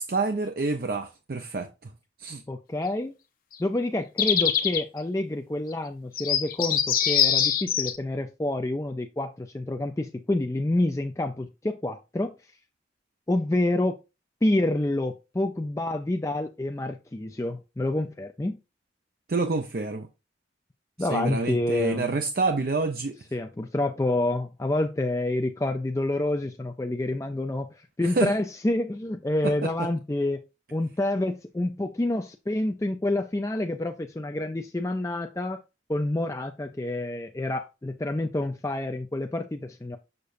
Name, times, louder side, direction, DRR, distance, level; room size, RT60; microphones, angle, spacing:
voice 1, 0.0-1.9 2.2-2.4 19.3-20.1 21.0-23.2 28.0-28.3 29.4-29.9, right 3 dB, 55° right, 0.5 m, -28 dB
voice 2, 2.5-3.1 3.6-12.3 13.3-14.0 14.4-18.6 21.0-22.1 23.3-27.7 28.0-30.4 30.7-35.6 35.9-40.0, left 1 dB, 15° left, 0.4 m, -28 dB
sound 1, 3.5-3.6 4.2-4.8 5.7-5.8 6.1-8.0, left 9 dB, 50° left, 0.8 m, -24 dB
6.7 x 6.6 x 2.6 m
head